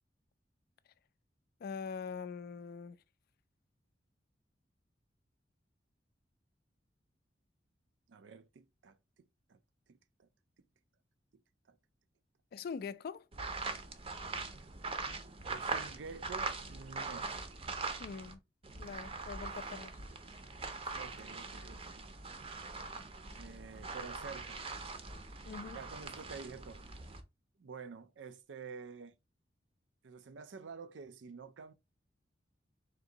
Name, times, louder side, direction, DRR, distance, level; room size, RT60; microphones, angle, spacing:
voice 1, 1.6-3.0 12.5-13.2 18.0-18.4 18.8-19.9 25.4-25.8, left 5 dB, 55° left, 0.3 m, -43 dB
voice 2, 8.1-9.0 9.5-9.6 9.9-10.3 11.3-11.4 11.7-11.8 15.4-17.3 20.9-22.1 23.3-24.6 25.6-26.8 27.6-29.2 30.0-31.7, right 5 dB, 85° right, 0.4 m, -49 dB
sound 1, 13.3-18.3 18.6-27.2, right 3 dB, 35° right, 0.6 m, -42 dB
3.7 x 2.6 x 3.8 m
head